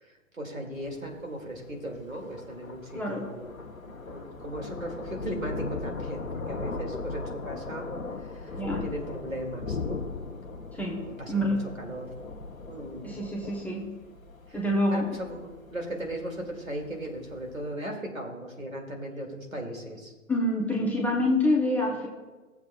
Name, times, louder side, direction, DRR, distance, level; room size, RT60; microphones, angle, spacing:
voice 1, 0.0-3.5 3.8-7.9 8.2-10.0 11.0-12.1 12.7-13.1 14.9-20.1, right 1 dB, 80° right, 1 dB, 2.3 m, -37 dB
Thunder, 0.7-17.6, left 3 dB, 85° left, 0.9 m, -39 dB
voice 2, 2.9-3.2 8.5-8.8 10.7-11.0 11.3-11.7 13.0-13.9 14.5-15.2 20.3-22.1, left 1 dB, 5° left, -3 dB, 0.7 m, -26 dB
18.0 x 7.2 x 2.3 m, 1.2 s
figure-of-eight pair, 120°, 40 cm